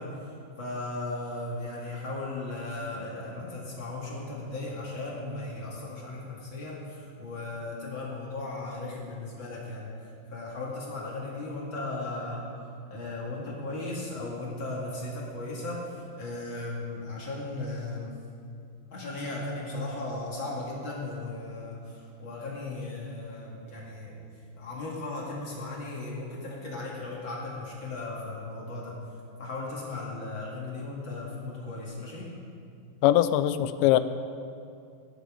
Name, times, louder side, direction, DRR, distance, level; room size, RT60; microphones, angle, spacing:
voice 1, 0.0-9.9 10.3-12.5 12.9-18.2 18.9-24.2 24.6-29.0 29.4-32.3, left 2 dB, 40° left, -5 dB, 1.9 m, -36 dB
voice 2, 33.0-34.0, left 13 dB, 85° left, 12 dB, 2.6 m, -21 dB
16.5 x 11.0 x 5.1 m, 2.4 s
omnidirectional pair, 5.3 m